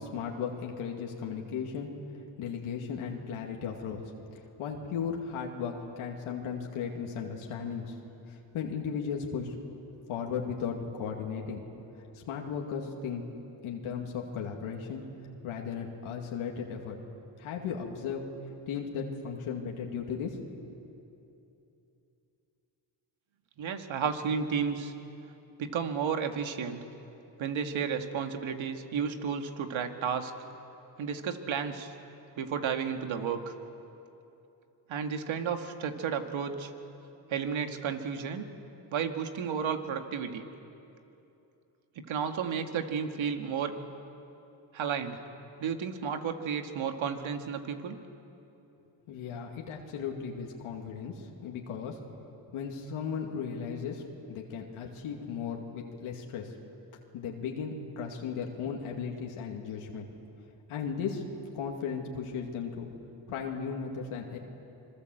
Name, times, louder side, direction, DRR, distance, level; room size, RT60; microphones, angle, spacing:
voice 1, 0.0-1.9 2.4-4.0 4.3-8.0 8.3-9.5 10.1-11.6 12.1-13.2 13.6-15.0 15.4-17.0 17.4-18.3 18.7-20.4 49.1-52.0 52.5-56.5 57.1-60.1 60.7-61.2 61.5-62.9 63.3-64.4, left 6 dB, 85° left, 0 dB, 2.4 m, -36 dB
voice 2, 23.6-24.9 25.6-26.8 27.4-30.3 31.0-32.0 32.4-33.5 34.9-36.7 37.3-38.5 38.9-40.4 42.1-43.7 44.7-45.2 45.6-48.0, right 6 dB, 70° right, 6 dB, 2.1 m, -32 dB
26.0 x 23.0 x 7.9 m, 2.9 s
supercardioid pair, 65°, 48 cm